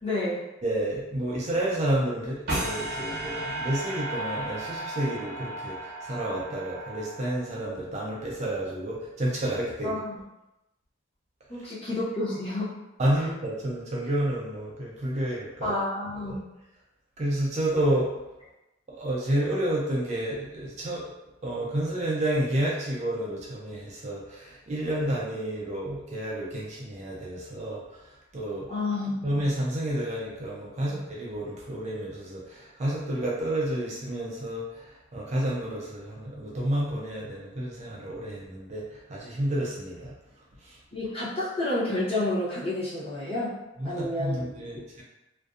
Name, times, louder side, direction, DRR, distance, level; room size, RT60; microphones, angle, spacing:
voice 1, 0.0-0.4 9.8-10.1 11.5-12.8 13.1-13.2 15.6-16.4 28.7-29.3 40.9-43.6 43.8-44.5, left 2 dB, 30° left, -9 dB, 0.8 m, -30 dB
voice 2, 0.6-10.0 13.0-15.8 16.3-16.4 17.2-18.1 18.9-21.1 21.4-28.7 29.2-40.1 40.6-40.8 43.8-45.0, right 1 dB, 35° right, -4 dB, 0.4 m, -30 dB
sound 1, 2.5-7.7, right 1 dB, 50° right, 0.8 m, -34 dB
2.5 x 2.2 x 2.4 m, 0.95 s
head